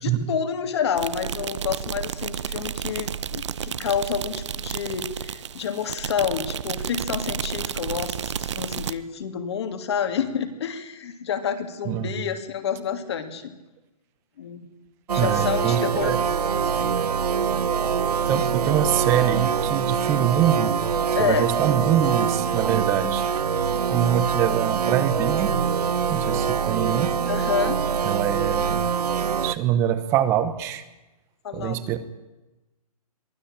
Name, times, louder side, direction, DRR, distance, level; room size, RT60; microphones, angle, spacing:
voice 1, 0.0-13.5 14.4-14.7 15.1-16.9 21.1-21.5 27.3-27.8 31.4-31.8, left 7 dB, 45° left, 8 dB, 2.6 m, -29 dB
sound 1, 1.0-8.9, right 8 dB, 50° right, 0.9 m, -31 dB
sound 2, 15.1-29.6, right 7 dB, 85° right, 1.0 m, -24 dB
voice 2, 15.2-16.2 18.3-20.8 21.2-23.4 23.9-25.6 26.1-27.2 28.0-28.8 29.4-30.8 31.5-32.0, right 10 dB, 15° right, 12 dB, 0.9 m, -24 dB
23.0 x 16.0 x 8.8 m, 1.0 s
hypercardioid pair, 170°, 20 cm